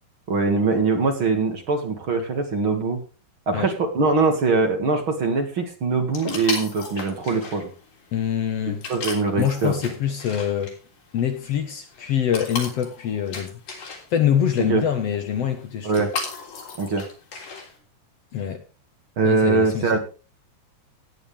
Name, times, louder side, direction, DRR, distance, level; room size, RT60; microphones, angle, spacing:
voice 1, 0.3-3.0 3.5-7.7 8.7-9.7 14.6-14.8 15.8-16.1 16.8-17.0 19.2-20.0, right 4 dB, 45° right, 2.6 m, -22 dB
sound 1, 6.1-17.8, left 4 dB, 80° left, 5.1 m, -37 dB
voice 2, 8.1-8.8 9.4-10.7 11.1-13.5 14.1-16.1 18.3-18.6 19.2-20.0, left 9 dB, 60° left, 2.1 m, -24 dB
16.5 x 9.8 x 3.4 m
omnidirectional pair, 3.6 m